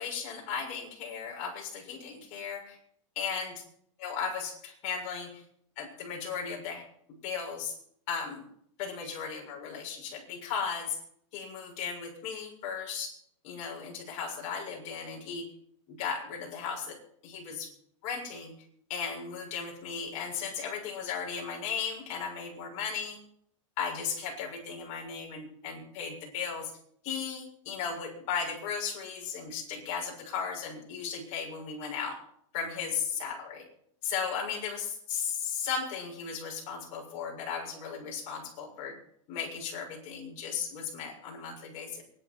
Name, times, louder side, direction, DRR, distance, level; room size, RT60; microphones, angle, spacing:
voice 1, 0.0-2.8 3.2-3.6 4.0-5.4 5.8-6.8 7.2-7.8 8.1-8.5 8.8-11.0 11.3-13.2 13.4-15.5 15.9-17.0 17.2-17.7 18.0-18.5 18.9-23.2 23.8-26.7 27.0-32.2 32.5-33.7 34.0-39.0 39.3-42.0, left 6 dB, 45° left, 0 dB, 6.9 m, -36 dB
24.0 x 11.0 x 4.6 m, 0.67 s
supercardioid pair, 145°, 17 cm